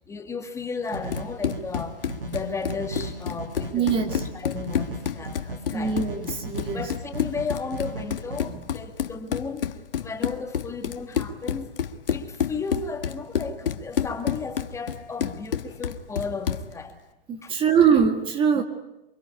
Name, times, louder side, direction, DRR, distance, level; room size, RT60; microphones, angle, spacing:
voice 1, 0.1-6.0 6.7-9.7 10.0-11.7 12.1-17.0 17.4-17.5 18.5-18.6, left 4 dB, 10° left, 5 dB, 1.8 m, -34 dB
Run, 0.9-16.7, left 8 dB, 65° left, 1.6 m, -30 dB
sound 1, 0.9-8.4, right 2 dB, 70° right, 6.3 m, -37 dB
voice 2, 3.7-4.2 5.7-6.9 8.5-8.6 17.3-18.6, right 7 dB, 20° right, 6 dB, 2.0 m, -22 dB
25.0 x 23.5 x 9.5 m, 0.92 s
hypercardioid pair, 130°, 29 cm